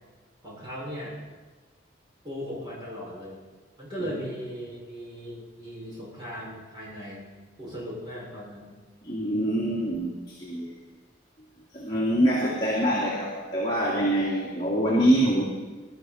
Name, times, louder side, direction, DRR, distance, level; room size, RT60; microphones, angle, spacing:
voice 1, 0.4-1.1 2.2-3.4 3.8-7.3 7.6-8.7, equal, 25° right, -5 dB, 6.2 m, -37 dB
voice 2, 9.0-10.7 11.7-15.4, right 1 dB, 25° left, -6 dB, 2.7 m, -25 dB
21.0 x 12.5 x 4.3 m, 1.4 s
head